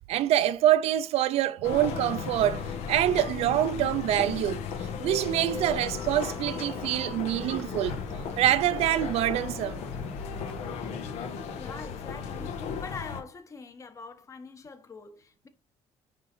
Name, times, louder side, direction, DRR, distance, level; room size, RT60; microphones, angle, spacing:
voice 1, 0.1-4.6 5.0-8.0 8.4-9.8, right 12 dB, 75° right, 0.5 m, -25 dB
sound 1, 1.6-13.2, left 6 dB, 90° left, 1.5 m, -35 dB
sound 2, 5.9-11.0, left 2 dB, 10° left, 0.4 m, -46 dB
voice 2, 11.6-15.5, left 4 dB, 30° left, 1.0 m, -44 dB
9.4 x 3.8 x 4.4 m
cardioid pair, 155°, 11 cm